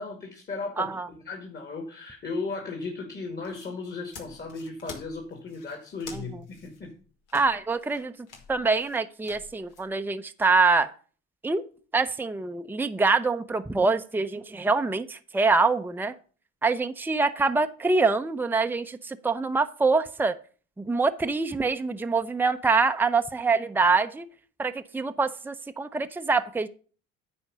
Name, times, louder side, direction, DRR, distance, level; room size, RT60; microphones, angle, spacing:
voice 1, 0.0-6.9, left 3 dB, 35° left, 2.3 m, -36 dB
voice 2, 0.8-1.1 6.1-6.2 7.3-8.1 8.5-10.9 11.4-11.6 11.9-16.1 16.6-20.3 20.8-24.3 24.6-26.7, right 4 dB, 5° right, 0.6 m, -25 dB
sound 1, 3.4-9.9, left 5 dB, 80° left, 2.1 m, -48 dB
9.6 x 4.4 x 6.8 m
supercardioid pair, 80°, 30 cm